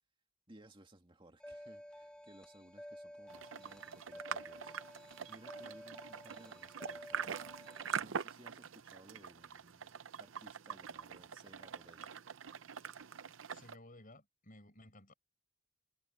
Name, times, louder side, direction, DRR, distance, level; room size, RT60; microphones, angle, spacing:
voice 1, 0.5-12.1, right 1 dB, 25° right, 2.2 m, -61 dB
sound 1, 1.4-8.0, equal, 5° left, 0.6 m, -52 dB
sound 2, 3.3-13.8, right 7 dB, 65° right, 0.6 m, -44 dB
voice 2, 13.5-15.1, left 1 dB, 40° left, 5.5 m, -57 dB
head